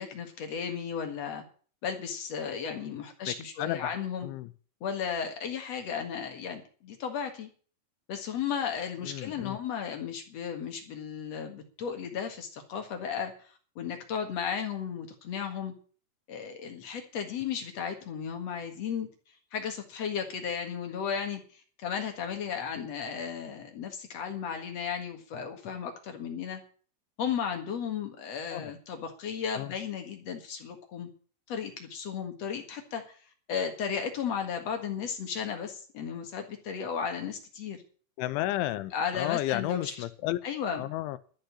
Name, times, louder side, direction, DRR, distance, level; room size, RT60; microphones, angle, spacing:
voice 1, 0.0-1.4 1.8-4.3 4.8-7.5 8.1-15.7 16.3-19.1 19.5-26.6 27.2-31.1 31.5-33.2 33.5-37.8 38.9-39.9 40.4-40.8, left 7 dB, 55° left, 1.8 m, -34 dB
voice 2, 3.3-4.0 4.2-4.5 9.0-9.6 28.5-28.7 29.6-29.7 38.2-40.4 40.7-41.2, left 15 dB, 80° left, 3.1 m, -32 dB
13.0 x 6.7 x 9.6 m
omnidirectional pair, 5.5 m